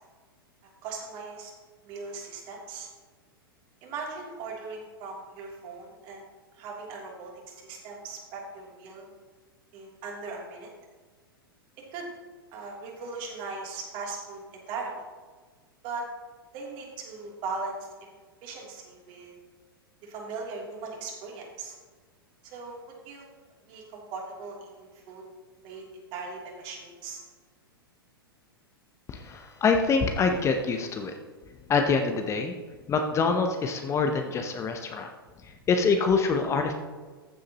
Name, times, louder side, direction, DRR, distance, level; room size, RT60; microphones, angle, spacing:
voice 1, 0.6-1.5 1.8-2.9 3.8-6.2 6.5-9.1 9.7-10.7 11.9-12.1 12.5-15.0 15.8-16.0 16.5-17.9 18.4-19.4 20.0-21.8 22.4-23.3 23.7-25.2 25.6-27.2, right 4 dB, 40° right, -2 dB, 3.0 m, -39 dB
voice 2, 29.1-31.1 31.7-32.5 32.9-35.1 35.7-36.7, left 4 dB, 25° left, 5 dB, 0.8 m, -25 dB
14.5 x 7.6 x 3.0 m, 1.4 s
figure-of-eight pair, 100°, 12 cm